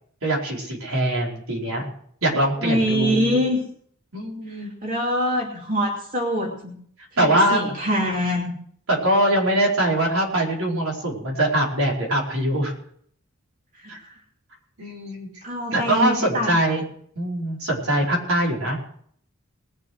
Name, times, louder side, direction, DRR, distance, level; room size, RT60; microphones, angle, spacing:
voice 1, 0.2-1.9 2.2-3.4 4.1-4.7 7.2-7.6 8.9-12.7 13.9-14.0 14.8-15.3 15.7-16.8 17.1-18.8, right 1 dB, 80° right, -2 dB, 4.9 m, -22 dB
voice 2, 2.6-3.6 4.5-6.7 7.1-8.5 13.8-14.1 15.4-16.5, equal, 40° right, -1 dB, 2.7 m, -24 dB
20.0 x 7.3 x 6.4 m, 0.63 s
head